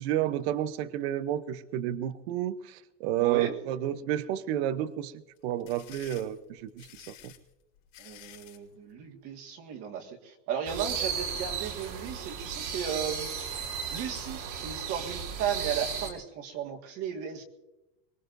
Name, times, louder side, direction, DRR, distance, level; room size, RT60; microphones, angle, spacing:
voice 1, 0.0-7.3, right 12 dB, 60° right, 13 dB, 0.9 m, -31 dB
voice 2, 3.2-3.6 8.0-13.3 13.9-17.4, right 8 dB, 40° right, 3 dB, 1.9 m, -35 dB
sound 1, 5.4-8.7, left 13 dB, 80° left, 4.1 m, -51 dB
sound 2, 10.7-16.1, right 6 dB, 80° right, 4.6 m, -35 dB
24.0 x 21.0 x 2.6 m, 0.99 s
supercardioid pair, 175°, 36 cm